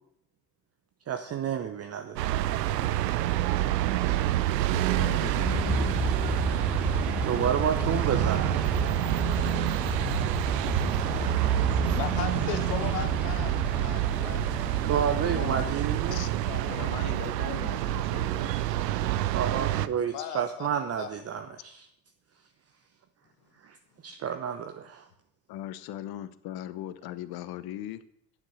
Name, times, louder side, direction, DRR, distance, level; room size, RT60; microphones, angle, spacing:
voice 1, 1.1-2.3 7.2-9.0 14.8-16.2 19.3-21.8 23.6-23.8 24.0-25.0, right 8 dB, 30° right, 7 dB, 0.8 m, -30 dB
sound 1, 2.2-19.9, right 14 dB, 80° right, 0.6 m, -28 dB
voice 2, 4.7-6.0 15.2-15.7 16.1-16.3 16.6-18.6 25.5-28.0, left 12 dB, 50° left, 15 dB, 0.9 m, -39 dB
sound 2, 5.4-17.1, equal, 5° right, 1.2 m, -32 dB
voice 3, 11.4-15.6 16.1-16.2 16.5-16.9 20.1-20.7 21.0-21.5, left 9 dB, 75° left, 10 dB, 1.3 m, -39 dB
9.1 x 7.4 x 6.3 m, 0.74 s
hypercardioid pair, 70°, 48 cm